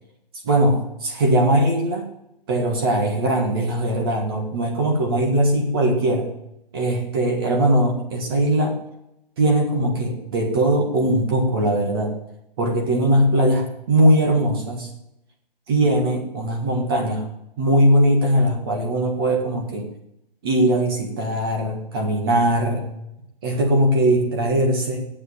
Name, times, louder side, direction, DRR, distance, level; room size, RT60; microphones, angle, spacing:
voice 1, 0.4-2.1 2.5-6.3 6.7-8.8 9.4-12.2 12.6-14.9 15.7-17.3 17.6-19.9 20.4-22.9 23.4-25.1, right 1 dB, 25° right, 2 dB, 1.7 m, -20 dB
9.7 x 7.5 x 7.1 m, 0.84 s
hypercardioid pair, 175°, 29 cm